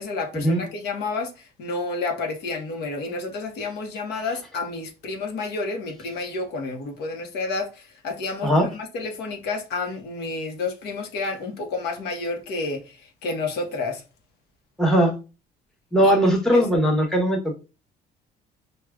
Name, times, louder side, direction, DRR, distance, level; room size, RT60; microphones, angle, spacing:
voice 1, 0.0-14.0 16.0-16.2 16.5-16.7, left 3 dB, 75° left, 0.9 m, -30 dB
voice 2, 14.8-15.1 15.9-17.6, equal, 5° left, 1.0 m, -19 dB
4.7 x 2.3 x 2.3 m
cardioid pair, 110°, 17 cm